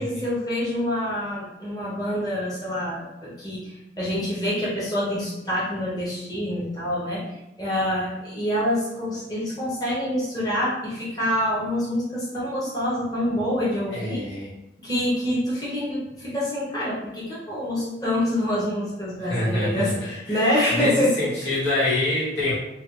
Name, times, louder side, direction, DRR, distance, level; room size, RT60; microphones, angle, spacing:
voice 1, 0.0-7.2 7.6-14.2 14.8-21.2, left 1 dB, 20° left, -8 dB, 0.8 m, -26 dB
voice 2, 13.9-14.5 19.3-19.9 20.3-22.5, left 1 dB, 85° left, -7 dB, 1.3 m, -26 dB
3.3 x 2.2 x 2.9 m, 0.90 s
head